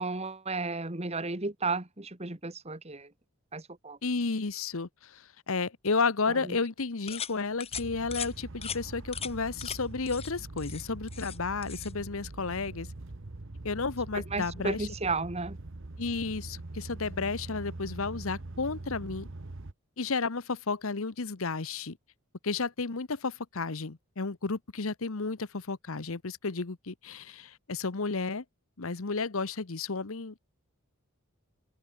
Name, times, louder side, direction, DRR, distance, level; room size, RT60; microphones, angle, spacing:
voice 1, 0.0-3.1 3.5-4.0 6.3-6.6 14.1-15.6, right 3 dB, 30° right, 1.7 m, -33 dB
voice 2, 4.0-12.9 13.6-14.8 16.0-19.3 20.0-22.0 22.4-28.4 28.8-30.6, left 4 dB, 65° left, 1.0 m, -32 dB
sound 1, 7.1-7.3 7.6-7.8 8.1-8.3 8.6-8.8 9.1-9.3 9.6-9.8 10.1-10.3 10.6-11.4 11.6-11.9, left 8 dB, 25° left, 2.9 m, -38 dB
sound 2, 7.7-19.7, right 2 dB, 55° right, 1.1 m, -43 dB
open air
head